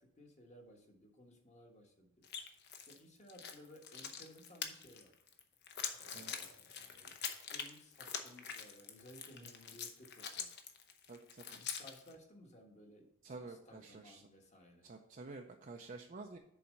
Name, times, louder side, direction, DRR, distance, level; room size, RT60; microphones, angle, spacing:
voice 1, 0.0-2.3 2.9-5.1 6.0-10.5 11.5-13.1 13.4-14.9, equal, 35° left, 2 dB, 1.4 m, -59 dB
sound 1, 2.2-3.0 3.3-12.1, left 7 dB, 55° left, 0.9 m, -45 dB
voice 2, 6.1-6.6 9.4-9.5 11.1-11.4 13.2-14.2 14.8-16.4, right 3 dB, 40° right, 2 dB, 0.5 m, -50 dB
7.0 x 4.2 x 6.4 m, 0.80 s
head